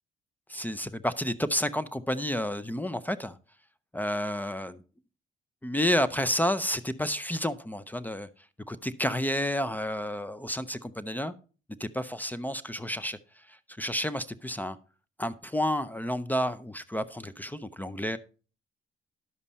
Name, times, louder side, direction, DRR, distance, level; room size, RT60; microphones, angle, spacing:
voice 1, 0.5-3.4 3.9-4.8 5.6-8.3 8.7-11.3 11.8-14.8 15.2-18.2, equal, 10° left, 0.6 m, -30 dB
11.0 x 7.1 x 4.2 m
cardioid pair, 90°, 20 cm